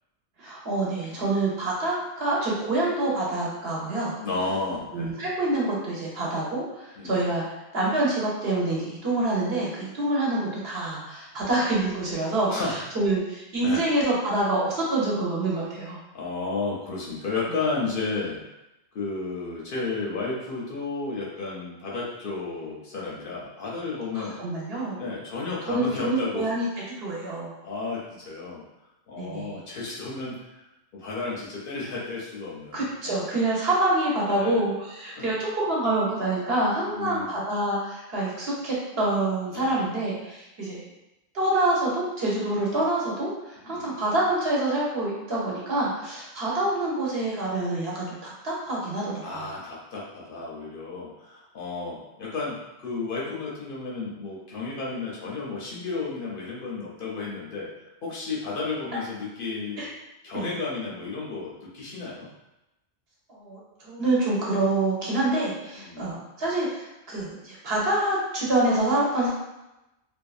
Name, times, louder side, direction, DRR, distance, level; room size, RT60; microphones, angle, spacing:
voice 1, 0.4-4.2 4.9-7.4 7.7-12.5 12.9-16.0 24.1-25.0 25.7-26.7 27.0-27.5 29.2-29.6 32.7-40.9 41.3-49.5 59.8-59.9 60.3-60.5 63.3-69.3, right 2 dB, 65° right, -5 dB, 0.9 m, -26 dB
voice 2, 3.9-5.1 7.0-7.2 12.5-12.8 13.6-13.8 16.1-18.4 18.9-24.4 25.0-26.5 27.6-28.6 29.1-30.6 30.9-33.3 34.3-34.6 35.2-35.3 36.9-37.3 39.5-39.8 43.6-44.0 49.2-57.7 58.0-59.8 60.2-62.3 65.8-66.1, left 3 dB, 60° left, -5 dB, 0.7 m, -33 dB
2.6 x 2.2 x 2.3 m, 0.95 s
omnidirectional pair, 1.1 m